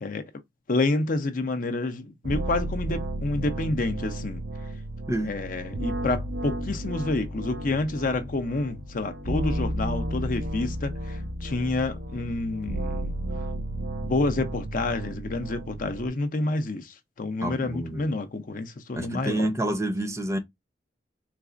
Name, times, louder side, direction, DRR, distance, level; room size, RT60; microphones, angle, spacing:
voice 1, 0.0-0.3 0.7-4.4 5.2-13.2 14.0-19.5, left 2 dB, 50° left, 0.6 m, -29 dB
sound 1, 2.2-16.1, right 1 dB, 80° right, 1.0 m, -33 dB
voice 2, 17.4-18.1 18.9-20.4, right 1 dB, 15° right, 0.6 m, -28 dB
4.0 x 2.4 x 2.4 m
head